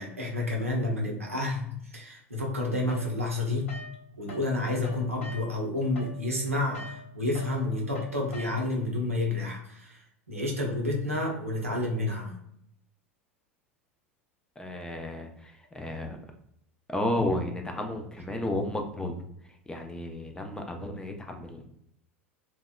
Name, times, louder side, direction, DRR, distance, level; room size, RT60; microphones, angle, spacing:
voice 1, 0.0-3.7 4.2-12.3, left 2 dB, 85° right, 0 dB, 0.6 m, -30 dB
sound 1, 2.9-4.5 4.8-8.9, left 1 dB, 70° left, 0.5 m, -44 dB
voice 2, 14.6-16.2 16.9-19.2 19.7-21.7, left 1 dB, 10° left, 4 dB, 0.4 m, -32 dB
2.7 x 2.1 x 2.2 m, 0.73 s
figure-of-eight pair, 80°, 7 cm